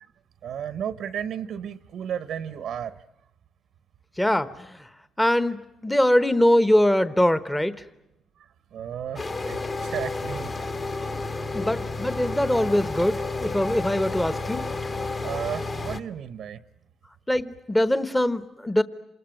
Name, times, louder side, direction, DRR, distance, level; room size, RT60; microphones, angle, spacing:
voice 1, 0.4-3.0 8.7-10.5 11.5-11.7 15.2-16.6, right 9 dB, 75° right, 1.0 m, -33 dB
voice 2, 4.2-4.8 5.2-7.7 11.5-14.6 17.3-18.8, left 1 dB, 10° left, 1.0 m, -22 dB
sound 1, 9.2-16.0, left 3 dB, 35° left, 1.5 m, -31 dB
27.0 x 20.5 x 9.0 m
cardioid pair, 90°, 0 cm